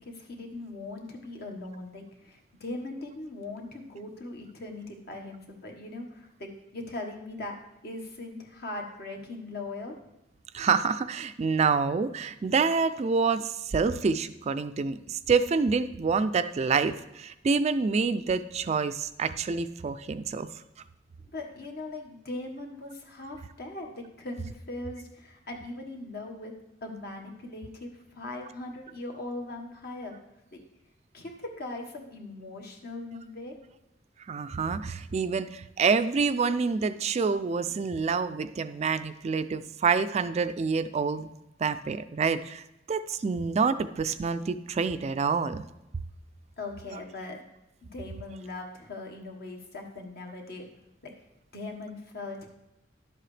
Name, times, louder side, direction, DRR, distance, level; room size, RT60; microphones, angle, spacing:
voice 1, 0.0-7.6 7.8-10.0 21.3-26.5 26.8-30.1 30.5-30.6 31.1-33.5 46.6-47.4 47.9-50.7 51.0-51.1 51.5-52.5, left 2 dB, 55° left, 2 dB, 1.4 m, -40 dB
voice 2, 10.5-20.5 34.3-41.3 41.6-42.6 42.9-45.6, right 5 dB, 35° right, 11 dB, 0.3 m, -27 dB
11.0 x 7.6 x 3.3 m, 0.91 s
head